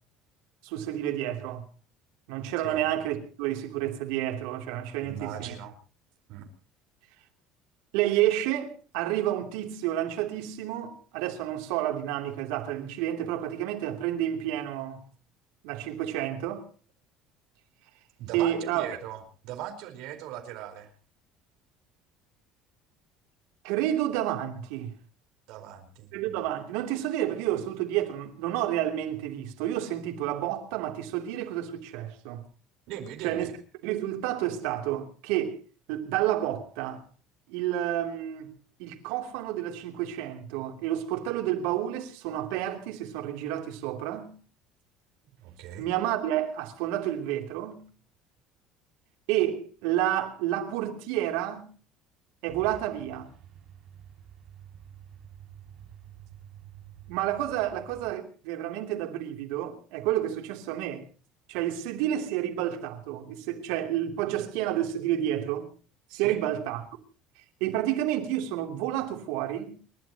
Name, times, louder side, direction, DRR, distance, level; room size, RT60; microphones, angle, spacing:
voice 1, 0.6-1.6 2.3-5.6 7.9-15.0 15.6-16.7 18.3-18.9 23.6-24.9 26.1-32.4 33.2-33.5 33.8-35.6 35.9-37.0 37.5-38.5 38.8-44.3 45.8-47.8 49.3-51.7 52.4-53.3 57.1-61.0 61.5-65.7 66.1-66.8 67.6-69.8, right 12 dB, 90° right, 3.0 m, -30 dB
voice 2, 5.0-5.7 6.3-6.5 18.2-20.9 25.5-26.4 32.9-33.5 45.4-45.9 66.1-66.4, right 10 dB, 65° right, 4.5 m, -39 dB
Truck, 52.5-58.1, right 9 dB, 40° right, 6.1 m, -49 dB
29.5 x 13.0 x 2.9 m
cardioid pair, 165°, 0 cm